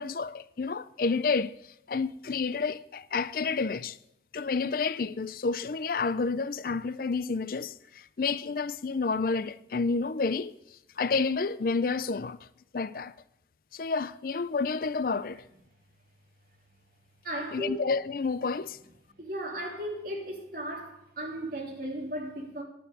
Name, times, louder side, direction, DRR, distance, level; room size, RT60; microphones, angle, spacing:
voice 1, 0.0-1.5 1.9-4.0 4.3-10.5 11.0-12.4 12.7-13.1 13.7-15.4 17.5-18.8, left 4 dB, 50° left, 0.4 m, -30 dB
voice 2, 17.2-17.8 19.2-22.6, right 1 dB, 50° right, 3.3 m, -35 dB
10.5 x 9.3 x 6.6 m
head